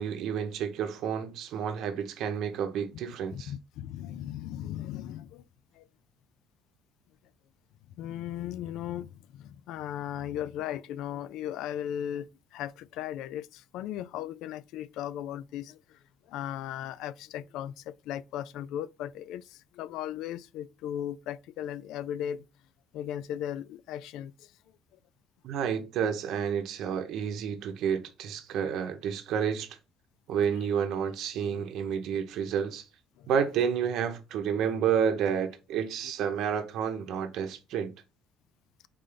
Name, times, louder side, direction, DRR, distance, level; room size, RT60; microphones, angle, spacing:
voice 1, 0.0-3.5 25.4-29.8 30.3-32.8 33.3-37.9, right 7 dB, 65° right, 0.8 m, -30 dB
voice 2, 3.3-5.4 5.8-5.9 8.0-16.0 16.3-22.5 22.9-24.5 31.4-31.6 33.2-33.3, left 11 dB, 80° left, 0.3 m, -37 dB
3.8 x 3.3 x 3.8 m
cardioid pair, 145°, 0 cm